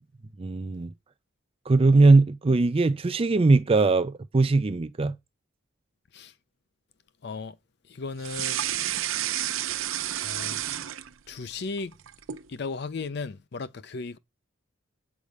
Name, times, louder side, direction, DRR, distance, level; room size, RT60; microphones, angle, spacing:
voice 1, 0.4-0.9 1.7-5.1, right 3 dB, 30° right, 0.4 m, -20 dB
voice 2, 7.2-7.5 7.9-8.6 10.2-10.6 11.3-11.9 12.5-14.2, left 4 dB, 55° left, 0.5 m, -35 dB
sound 1, 8.2-11.4 11.8-12.5, right 12 dB, 80° right, 0.6 m, -30 dB
8.3 x 4.9 x 5.2 m
head